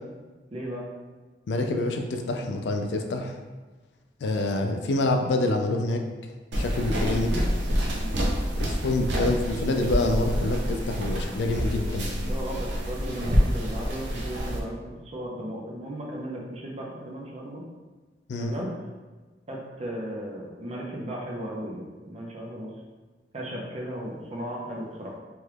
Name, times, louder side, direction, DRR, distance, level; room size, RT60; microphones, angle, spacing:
voice 1, 0.5-0.8 7.9-8.3 12.2-17.6 18.4-18.7 19.5-22.7 23.3-25.2, right 1 dB, 35° right, -2 dB, 0.6 m, -36 dB
voice 2, 1.5-3.3 4.2-6.0 6.6-7.4 8.6-12.1 18.3-18.5, left 2 dB, 80° left, 4 dB, 0.4 m, -26 dB
sound 1, 6.5-14.6, equal, 90° right, 0.6 m, -27 dB
3.0 x 2.3 x 3.3 m, 1.3 s
head